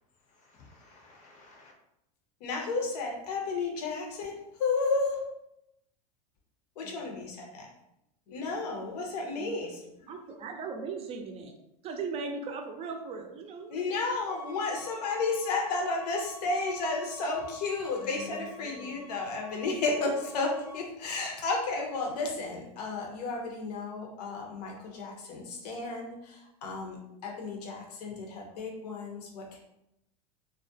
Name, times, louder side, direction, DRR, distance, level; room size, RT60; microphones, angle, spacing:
voice 1, 0.2-1.7 6.8-7.4 8.3-8.6 18.0-19.0, left 4 dB, 40° left, 0.6 m, -50 dB
voice 2, 2.4-5.2 6.8-7.7 8.3-9.8 13.7-29.6, left 3 dB, 80° left, 0.7 m, -32 dB
voice 3, 10.1-11.5 11.8-14.1, right 4 dB, 30° right, 0.4 m, -38 dB
Bowed string instrument, 14.3-20.8, left 2 dB, 5° right, 0.8 m, -50 dB
2.3 x 2.1 x 2.6 m
supercardioid pair, 110°, 20 cm